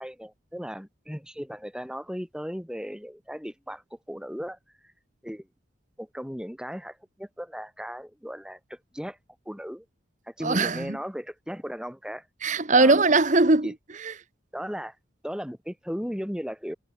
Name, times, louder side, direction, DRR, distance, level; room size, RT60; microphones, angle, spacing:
voice 1, 0.0-4.6 5.2-5.5 6.0-9.2 9.4-9.8 10.3-12.2 12.8-13.0 13.6-13.7 14.5-14.9 15.2-16.7, equal, 5° right, 6.4 m, -36 dB
voice 2, 10.4-11.0 12.4-13.7 14.0-14.1, right 3 dB, 40° right, 1.3 m, -20 dB
head